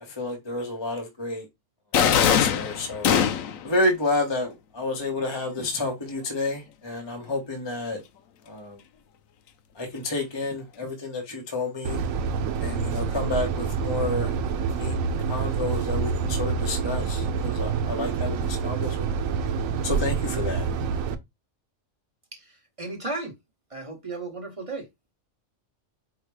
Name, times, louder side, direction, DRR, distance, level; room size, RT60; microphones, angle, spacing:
voice 1, 0.1-1.5 2.1-3.1 3.6-8.0 8.5-8.8 9.7-12.0 12.6-14.3 14.7-15.0 15.3-19.3 19.8-20.7, left 2 dB, 25° left, 0.8 m, -30 dB
sound 1, 1.9-3.7, left 8 dB, 90° left, 1.0 m, -21 dB
sound 2, 11.8-21.2, right 5 dB, 85° right, 1.0 m, -27 dB
voice 2, 22.3-23.4 23.7-24.9, right 3 dB, 30° right, 0.9 m, -35 dB
4.8 x 2.1 x 4.6 m
omnidirectional pair, 1.4 m